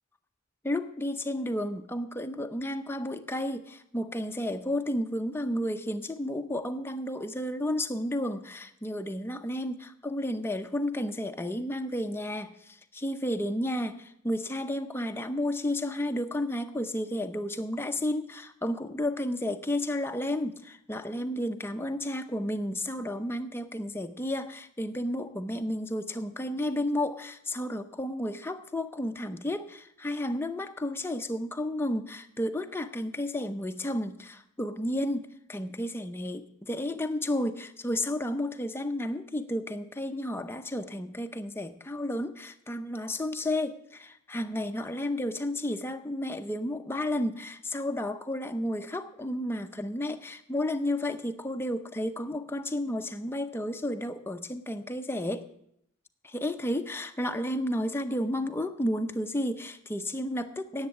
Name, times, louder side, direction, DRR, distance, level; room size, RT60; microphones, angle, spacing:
voice 1, 0.6-55.4 56.2-60.9, left 1 dB, 10° left, 7 dB, 0.7 m, -32 dB
10.0 x 8.1 x 8.6 m, 0.74 s
head